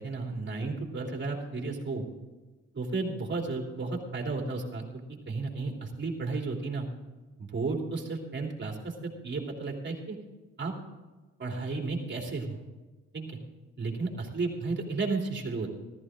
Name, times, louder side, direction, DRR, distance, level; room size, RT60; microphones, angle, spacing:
voice 1, 0.0-2.0 2.7-6.9 7.4-10.2 10.6-10.7 11.4-12.6 13.1-13.4 13.8-15.8, right 3 dB, 40° right, 0 dB, 3.3 m, -33 dB
14.0 x 14.0 x 3.8 m, 1.2 s
cardioid pair, 90°, 30 cm